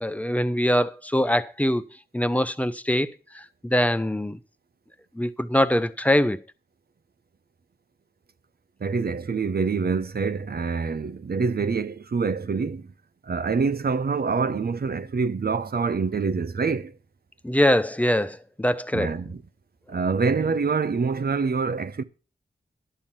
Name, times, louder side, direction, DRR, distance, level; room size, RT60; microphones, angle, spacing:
voice 1, 0.0-1.8 2.1-4.4 5.1-6.4 17.4-19.2, left 1 dB, 10° left, 0.8 m, -23 dB
voice 2, 8.8-12.8 13.3-16.9 18.9-19.4 19.9-22.0, right 5 dB, 60° right, 0.9 m, -26 dB
11.5 x 7.1 x 5.8 m
cardioid pair, 45°, 17 cm